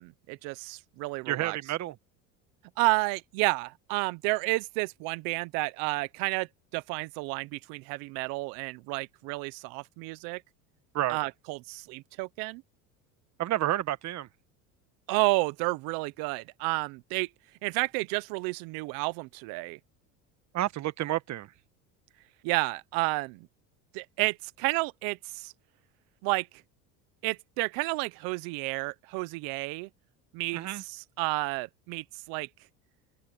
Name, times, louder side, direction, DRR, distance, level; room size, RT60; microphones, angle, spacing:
voice 1, 0.0-1.6 2.8-6.5 6.7-10.4 11.1-12.6 15.1-17.3 17.6-19.8 22.4-23.5 23.9-25.5 26.2-26.5 27.2-29.9 30.3-32.5, right 24 dB, 70° right, 1.1 m, -31 dB
voice 2, 1.3-1.9 10.9-11.2 13.4-14.3 20.5-21.5 30.5-30.8, right 14 dB, 50° right, 1.4 m, -30 dB
open air
supercardioid pair, 100°, 36 cm